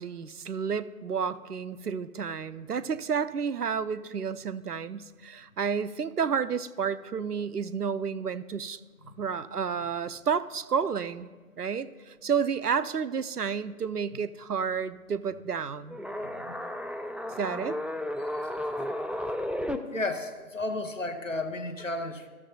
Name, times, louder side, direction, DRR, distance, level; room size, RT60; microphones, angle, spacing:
voice 1, 0.0-8.8 9.2-11.3 11.6-16.0 17.4-17.8, right 6 dB, 80° right, 13 dB, 0.6 m, -31 dB
sound 1, 15.9-19.8, left 1 dB, 5° right, 0.3 m, -33 dB
voice 2, 16.2-16.6 17.5-17.6 19.9-22.3, left 2 dB, 55° left, 7 dB, 0.9 m, -33 dB
14.5 x 6.7 x 2.7 m, 1.4 s
figure-of-eight pair, 165°, 45 cm